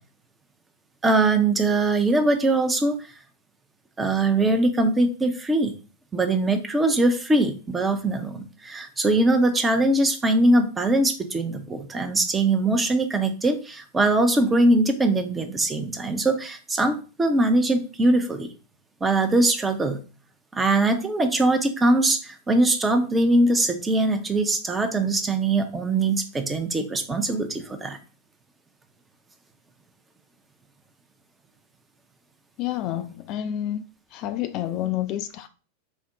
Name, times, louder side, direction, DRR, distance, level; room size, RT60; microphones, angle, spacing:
voice 1, 1.0-3.0 4.0-5.7 6.1-18.5 19.0-20.0 20.5-28.0, right 2 dB, 15° right, 0.6 m, -22 dB
voice 2, 32.6-33.8 34.1-35.5, left 12 dB, 40° left, 0.3 m, -29 dB
4.2 x 2.1 x 3.6 m
figure-of-eight pair, 90°, 0 cm